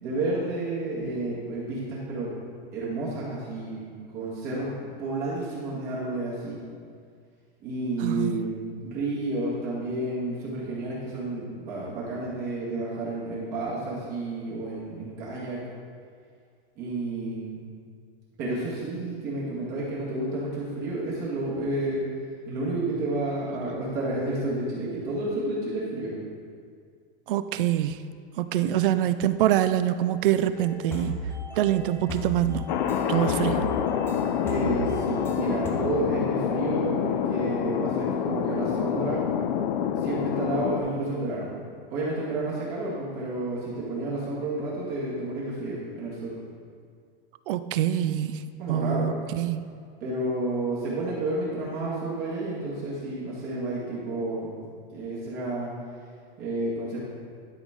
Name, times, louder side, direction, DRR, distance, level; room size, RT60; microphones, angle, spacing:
voice 1, 0.0-2.3 2.7-6.6 7.6-15.6 16.8-17.6 18.4-22.1 22.5-26.2 28.6-28.7 34.4-39.2 39.9-41.5 41.9-46.3 48.6-49.1 50.0-54.6 54.9-55.7 56.4-57.0, right 2 dB, 35° right, -7 dB, 2.0 m, -31 dB
voice 2, 8.0-8.4 27.3-28.0 28.4-31.2 31.6-32.7 33.1-33.7 47.5-49.6, right 11 dB, 65° right, 13 dB, 0.5 m, -25 dB
sound 1, 30.5-35.7, left 1 dB, 10° left, 0.6 m, -36 dB
Thunder, 32.7-40.8, left 8 dB, 55° left, 0.6 m, -27 dB
11.5 x 5.2 x 3.8 m, 2.1 s
supercardioid pair, 165°, 29 cm